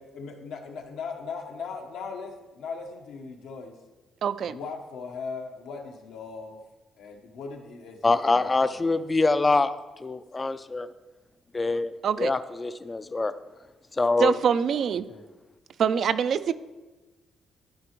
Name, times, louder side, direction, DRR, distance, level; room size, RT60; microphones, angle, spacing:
voice 1, 0.0-3.8 4.4-6.6 7.0-9.0 15.1-15.2, left 5 dB, 85° left, 2 dB, 1.0 m, -39 dB
voice 2, 4.2-4.6 12.0-12.3 14.2-15.1 15.8-16.5, right 7 dB, 60° right, 14 dB, 0.3 m, -24 dB
voice 3, 8.0-9.7 10.0-10.9 11.5-11.9 12.2-13.3 14.0-14.3, left 3 dB, 25° left, 12 dB, 0.3 m, -24 dB
12.0 x 4.9 x 3.0 m, 1.1 s
cardioid pair, 90°, 0 cm